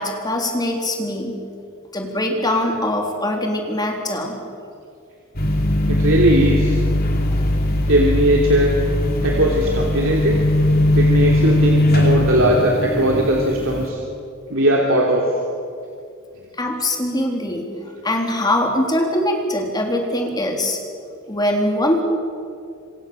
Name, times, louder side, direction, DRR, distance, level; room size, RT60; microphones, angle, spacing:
voice 1, 0.0-1.4 1.9-4.4 7.2-7.4 16.6-17.8 18.0-20.8 21.3-22.0, left 1 dB, 20° left, 2 dB, 3.7 m, -22 dB
sound 1, 5.3-13.9, left 1 dB, 45° left, 3.3 m, -19 dB
voice 2, 5.9-6.8 7.9-8.7 9.2-10.4 10.9-14.0 14.5-15.2, right 1 dB, 70° right, -1 dB, 3.3 m, -18 dB
27.0 x 25.5 x 7.1 m, 2.4 s
head